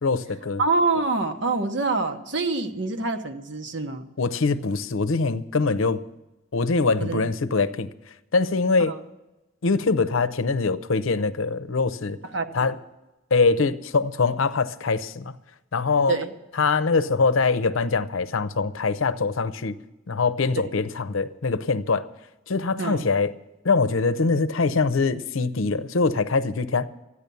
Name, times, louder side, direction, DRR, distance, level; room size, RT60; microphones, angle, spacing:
voice 1, 0.0-0.6 4.2-6.0 6.5-7.9 8.3-8.9 9.6-12.2 12.5-12.7 13.3-15.3 15.7-16.2 16.6-19.7 20.1-22.1 22.5-23.3 23.6-26.9, left 4 dB, 80° left, 0.7 m, -23 dB
voice 2, 0.6-4.1 7.0-7.2 8.8-9.0 12.2-12.8 16.1-16.3 20.5-20.7 22.8-23.1, right 3 dB, 60° right, 1.0 m, -26 dB
13.5 x 9.8 x 6.9 m
head